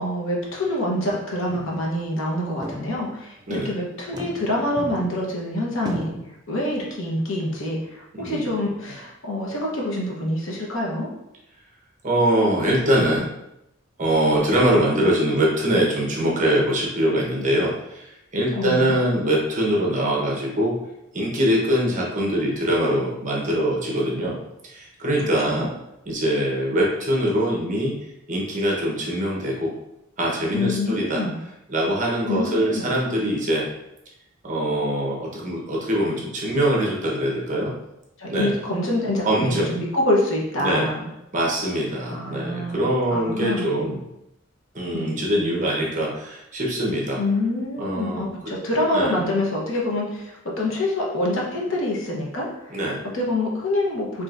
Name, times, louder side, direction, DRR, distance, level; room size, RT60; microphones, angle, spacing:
voice 1, 0.0-6.1 6.5-7.8 8.2-11.1 18.6-18.9 25.5-25.7 30.5-31.4 32.3-32.9 38.2-41.1 42.0-43.7 44.9-45.1 47.2-52.7 53.1-54.2, left 1 dB, 70° left, -3 dB, 1.0 m, -26 dB
sound 1, 1.1-1.2 1.5-1.9 2.3-2.4 2.6-3.4 4.0-5.4 5.9-6.2, right 1 dB, 20° right, 0.4 m, -35 dB
voice 2, 8.1-8.5 12.0-13.3 14.0-20.8 21.1-25.7 26.1-28.0 28.3-29.7 30.2-31.2 31.7-33.7 34.4-37.7 38.3-38.5 39.2-39.7 40.6-40.9 41.3-44.0 44.7-47.2 47.8-48.3 48.9-49.2 52.7-53.0, right 1 dB, 40° right, -3 dB, 1.0 m, -23 dB
5.0 x 3.0 x 2.5 m, 0.85 s
head